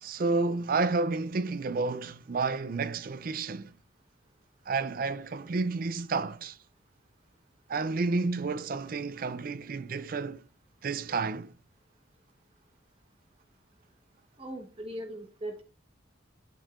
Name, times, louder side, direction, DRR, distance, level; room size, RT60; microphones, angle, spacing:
voice 1, 0.0-3.7 4.7-6.6 7.7-10.4 10.8-11.5, right 3 dB, 45° right, 0.4 m, -30 dB
voice 2, 14.4-15.6, right 1 dB, 30° right, 1.1 m, -39 dB
11.5 x 5.4 x 2.5 m
head